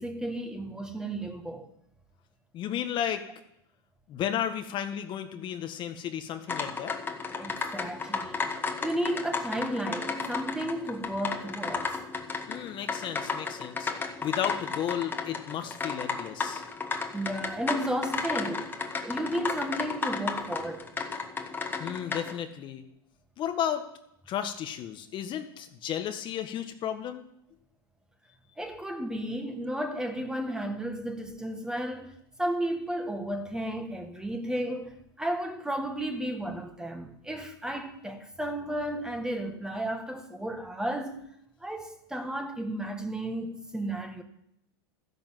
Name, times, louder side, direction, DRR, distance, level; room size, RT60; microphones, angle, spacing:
voice 1, 0.0-1.7 7.4-8.5 8.8-11.9 17.1-18.7 19.0-20.9 28.6-32.1 32.4-41.2 41.6-44.2, right 1 dB, 5° right, 2.0 m, -33 dB
voice 2, 2.5-3.2 4.1-7.0 7.4-7.5 12.5-16.6 21.8-22.8 23.4-23.9 24.3-27.2, left 10 dB, 40° left, 1.5 m, -33 dB
sound 1, 6.5-22.4, left 4 dB, 15° left, 1.9 m, -34 dB
14.0 x 11.0 x 7.7 m
supercardioid pair, 125°, 13 cm